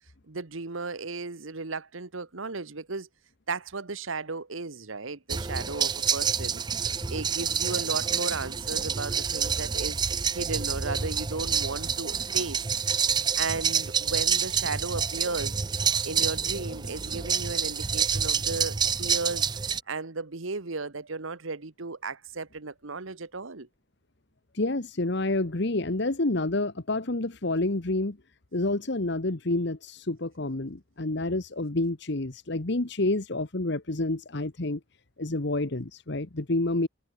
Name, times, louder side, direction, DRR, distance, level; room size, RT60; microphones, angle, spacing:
voice 1, 0.3-3.1 3.5-6.6 7.1-12.6 13.4-15.6 16.0-19.5 19.9-23.7, right 4 dB, 75° right, 1.3 m, -35 dB
sound 1, 5.3-19.8, right 6 dB, 20° right, 0.5 m, -28 dB
voice 2, 24.5-28.2 28.5-34.8 35.2-36.9, left 2 dB, 55° left, 1.3 m, -28 dB
head